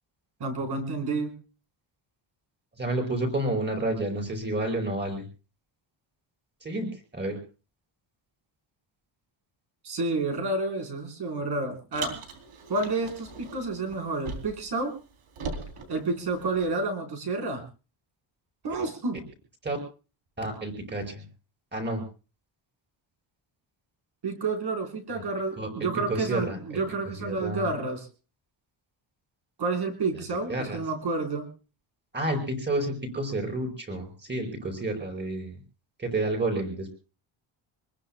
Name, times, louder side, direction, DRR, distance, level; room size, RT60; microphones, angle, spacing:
voice 1, 0.4-1.3 9.8-12.2 12.7-14.9 15.9-17.6 18.6-19.2 24.2-28.1 29.6-31.5, right 3 dB, 50° right, 3 dB, 4.4 m, -30 dB
voice 2, 2.8-5.2 6.6-7.4 19.6-19.8 20.4-21.2 21.7-22.0 25.1-25.2 25.6-26.8 27.2-27.8 30.1-30.8 32.1-35.6 36.0-36.9, right 2 dB, 20° right, 5 dB, 5.2 m, -30 dB
Car, 11.9-14.7 15.0-16.8, right 4 dB, 80° right, 3.4 m, -40 dB
27.0 x 20.5 x 2.2 m, 0.35 s
wide cardioid pair, 165°, 49 cm